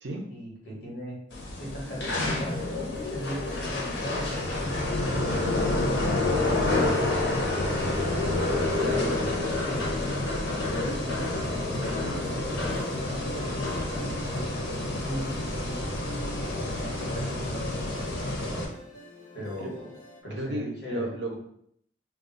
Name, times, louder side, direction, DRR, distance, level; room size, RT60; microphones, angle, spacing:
voice 1, 0.3-1.2 1.6-2.6 3.0-7.1 9.2-9.9 10.7-15.8 16.4-18.6 19.3-19.8 20.2-21.1, equal, 60° left, -3 dB, 1.1 m, -38 dB
sound 1, 1.3-18.6, left 2 dB, 80° left, 0.7 m, -28 dB
sound 2, 1.8-20.2, equal, 25° left, 0.5 m, -46 dB
voice 2, 8.7-9.1 19.6-19.7 20.3-21.4, right 1 dB, 65° right, 2 dB, 0.6 m, -33 dB
2.4 x 2.3 x 3.8 m, 0.69 s
head